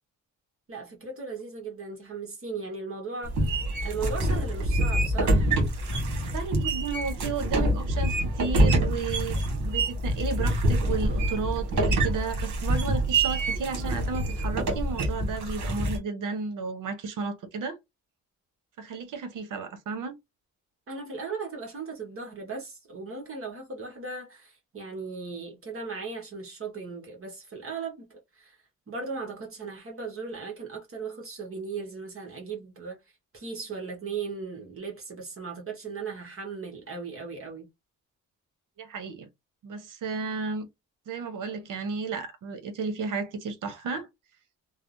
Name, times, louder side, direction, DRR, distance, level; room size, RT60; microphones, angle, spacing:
voice 1, 0.7-5.6 11.6-11.7 20.9-28.1 28.3-28.6 28.9-33.0 33.3-37.7, right 4 dB, 45° right, 1.1 m, -37 dB
sound 1, 3.2-16.0, right 1 dB, 65° right, 1.3 m, -26 dB
voice 2, 6.1-17.8 18.8-20.2 38.8-39.3 39.6-40.7 41.1-44.1, right 5 dB, 80° right, 0.8 m, -33 dB
3.2 x 2.0 x 2.6 m
cardioid pair, 100°, 31 cm